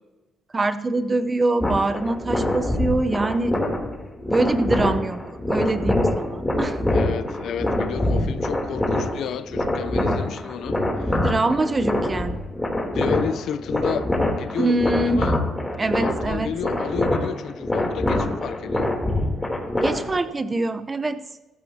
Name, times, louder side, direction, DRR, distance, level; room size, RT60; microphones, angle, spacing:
voice 1, 0.5-3.6 4.3-5.2 5.5-6.8 11.2-12.4 14.6-15.2 15.8-16.5 19.8-21.2, right 2 dB, 25° right, 12 dB, 0.9 m, -24 dB
sound 1, 1.6-20.3, left 1 dB, 15° left, 3.3 m, -24 dB
voice 2, 6.9-11.2 12.9-14.1 14.3-15.4 16.0-19.0, left 8 dB, 75° left, 13 dB, 0.7 m, -31 dB
17.5 x 14.5 x 2.9 m, 1.1 s
cardioid pair, 90°, 0 cm